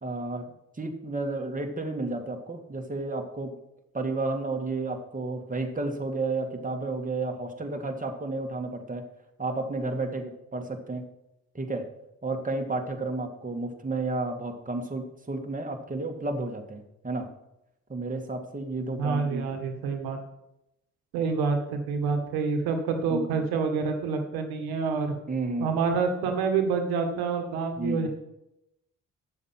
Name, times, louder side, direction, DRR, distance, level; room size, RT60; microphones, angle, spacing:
voice 1, 0.0-0.5 0.8-3.5 3.9-9.1 9.4-11.1 11.5-11.9 12.2-17.3 17.9-19.5 23.1-23.4 25.3-25.7 27.8-28.1, right 3 dB, 20° right, 3 dB, 2.0 m, -32 dB
voice 2, 19.0-20.2 21.1-25.1 25.6-28.1, right 5 dB, 85° right, 5 dB, 1.6 m, -27 dB
9.3 x 7.3 x 5.8 m, 0.87 s
supercardioid pair, 55°, 36 cm